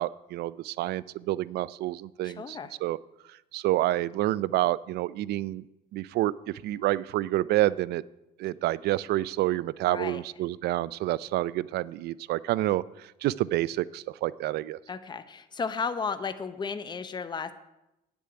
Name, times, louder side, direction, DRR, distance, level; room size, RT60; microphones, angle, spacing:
voice 1, 0.0-3.0 3.3-5.6 5.9-8.0 8.4-14.8, right 15 dB, 75° right, 20 dB, 0.5 m, -28 dB
voice 2, 2.2-2.7 9.9-10.2 14.9-17.5, left 5 dB, 25° left, 11 dB, 0.8 m, -34 dB
9.5 x 7.0 x 8.7 m, 0.92 s
cardioid pair, 110°, 17 cm